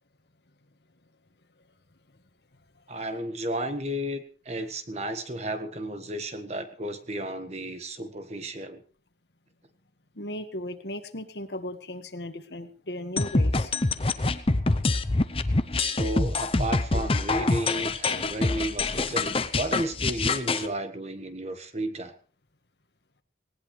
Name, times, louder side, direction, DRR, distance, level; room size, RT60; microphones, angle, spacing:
voice 1, 2.9-8.8 15.7-22.1, right 1 dB, 40° right, 9 dB, 1.6 m, -33 dB
voice 2, 10.2-13.7, left 1 dB, 75° left, 7 dB, 1.8 m, -37 dB
sound 1, 13.2-20.7, left 3 dB, 30° left, 0.8 m, -25 dB
19.0 x 19.0 x 3.3 m, 0.38 s
head